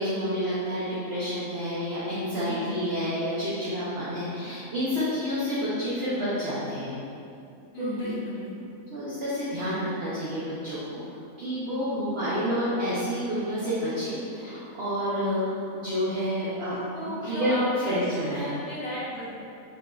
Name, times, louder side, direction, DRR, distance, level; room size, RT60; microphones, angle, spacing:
voice 1, 0.0-7.0 7.8-8.1 8.9-11.0 11.4-18.5, equal, 50° right, -11 dB, 0.9 m, -29 dB
voice 2, 2.3-2.9 7.7-8.7 16.9-19.3, left 1 dB, 75° left, -9 dB, 1.5 m, -35 dB
4.8 x 2.6 x 2.3 m, 2.5 s
omnidirectional pair, 1.5 m